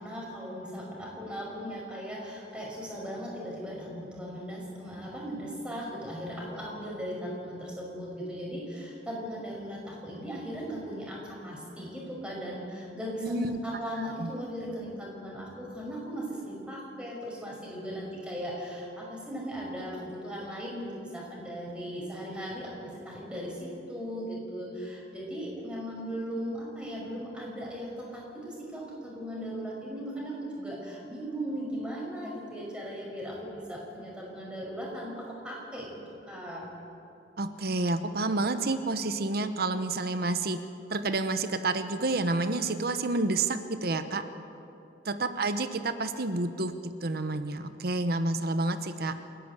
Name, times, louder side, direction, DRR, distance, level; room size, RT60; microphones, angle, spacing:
voice 1, 0.0-36.0 36.3-36.7, equal, 5° right, -4 dB, 5.6 m, -38 dB
voice 2, 13.2-13.6 14.2-14.3 37.4-40.6 40.9-44.2 45.0-49.1, right 2 dB, 60° right, 10 dB, 1.0 m, -29 dB
29.0 x 11.0 x 8.2 m, 2.8 s
head